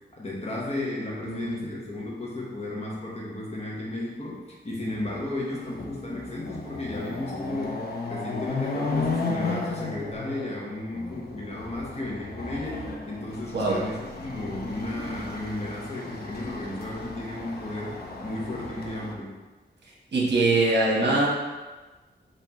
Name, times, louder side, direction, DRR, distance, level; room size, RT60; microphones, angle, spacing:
voice 1, 0.1-7.8 8.1-19.4, left 1 dB, 35° left, -4 dB, 1.1 m, -34 dB
voice 2, 1.2-1.6 13.5-13.9 20.1-21.3, right 2 dB, 65° right, -4 dB, 1.1 m, -23 dB
Chatter / Car passing by / Motorcycle, 5.1-5.2 5.6-19.1, left 3 dB, 55° left, 0.6 m, -34 dB
5.4 x 2.8 x 3.0 m, 1.2 s
wide cardioid pair, 120°, 19 cm